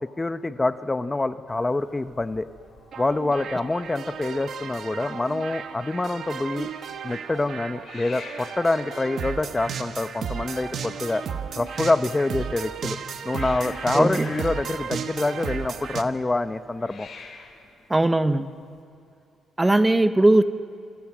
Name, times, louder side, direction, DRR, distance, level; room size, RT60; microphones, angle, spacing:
voice 1, 0.2-2.5 3.0-6.7 7.0-11.2 11.6-13.0 13.2-17.1, left 2 dB, 20° left, 11 dB, 0.9 m, -26 dB
Hiss, 1.5-18.8, left 4 dB, 55° left, 4.5 m, -48 dB
sound 1, 2.9-16.0, right 7 dB, 65° right, 1.3 m, -34 dB
voice 2, 13.9-14.3 17.9-18.5 19.6-20.4, right 2 dB, 15° right, 11 dB, 0.9 m, -19 dB
27.5 x 27.0 x 6.2 m, 2.4 s
cardioid pair, 90°, 0 cm